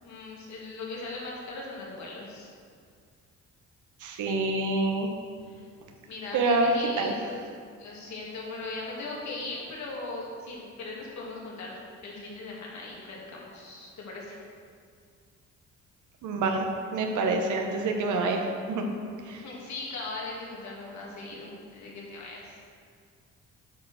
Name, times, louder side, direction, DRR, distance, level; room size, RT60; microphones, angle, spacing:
voice 1, 0.0-2.5 5.5-5.7 6.0-7.2 7.8-14.4 19.4-22.6, left 2 dB, 65° left, -3 dB, 2.4 m, -39 dB
voice 2, 4.0-5.1 6.3-7.1 16.2-18.8 19.3-19.4, right 3 dB, 80° right, 3 dB, 1.1 m, -27 dB
8.3 x 4.9 x 6.4 m, 2.1 s
cardioid pair, 90°, 30 cm